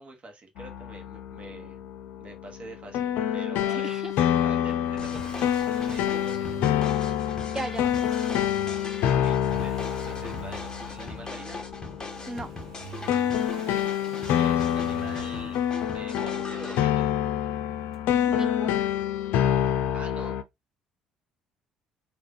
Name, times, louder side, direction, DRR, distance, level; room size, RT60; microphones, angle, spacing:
voice 1, 0.0-1.8 2.2-3.9 4.4-6.6 9.0-11.6 13.5-13.8 14.3-15.6 15.9-17.1 19.9-20.4, right 2 dB, 40° right, 1.2 m, -45 dB
sound 1, 0.6-20.4, left 10 dB, 65° left, 0.4 m, -27 dB
voice 2, 3.7-4.1 7.5-8.3 12.3-12.5 18.3-18.8, right 2 dB, 20° right, 0.5 m, -36 dB
Accelerating revving vroom, 4.7-16.6 17.9-18.0, right 7 dB, 85° right, 0.8 m, -48 dB
sound 2, 5.0-16.8, left 2 dB, 20° left, 1.3 m, -41 dB
3.5 x 2.4 x 3.5 m
hypercardioid pair, 55°, 3 cm